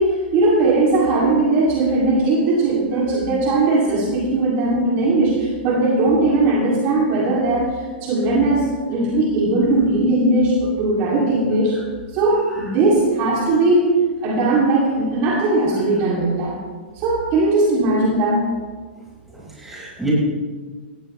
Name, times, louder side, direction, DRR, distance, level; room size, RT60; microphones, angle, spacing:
voice 1, 0.0-11.8 12.1-13.9 14.2-16.6 16.9-18.5, right 2 dB, 35° right, -4 dB, 2.9 m, -19 dB
voice 2, 12.3-12.7 19.3-20.1, right 3 dB, 5° right, -6 dB, 5.4 m, -31 dB
18.5 x 15.0 x 3.3 m, 1.5 s
hypercardioid pair, 155°, 6 cm